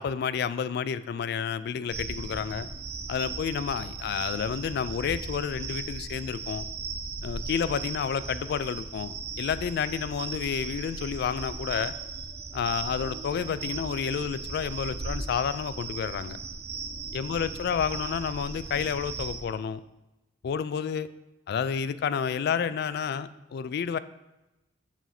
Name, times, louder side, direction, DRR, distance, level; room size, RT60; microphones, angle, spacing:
voice 1, 0.0-2.7 3.1-6.7 7.2-11.9 12.5-16.4 17.1-19.8 20.4-21.1 21.5-24.0, left 7 dB, 60° left, 15 dB, 0.3 m, -30 dB
sound 1, 1.9-19.4, right 4 dB, 35° right, 0.6 m, -37 dB
7.2 x 2.7 x 5.8 m, 0.97 s
head